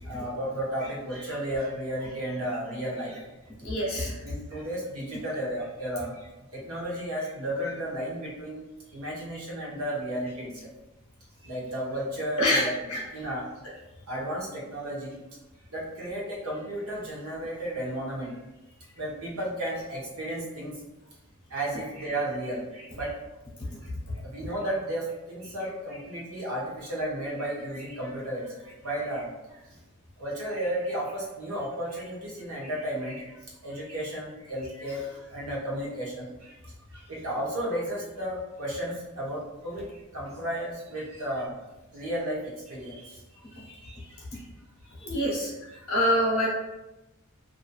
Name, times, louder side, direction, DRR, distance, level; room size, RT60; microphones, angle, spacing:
voice 1, 0.0-3.2 4.2-8.6 8.9-10.7 11.5-12.7 13.1-13.5 14.1-15.2 15.7-18.4 18.9-20.8 21.5-23.2 24.2-29.6 30.2-41.5 41.9-44.5, right 1 dB, 70° right, -4 dB, 0.9 m, -33 dB
voice 2, 3.6-4.1 12.4-13.0 45.0-45.5 45.9-46.5, equal, 60° left, -4 dB, 0.9 m, -25 dB
2.6 x 2.5 x 2.2 m, 1.0 s
head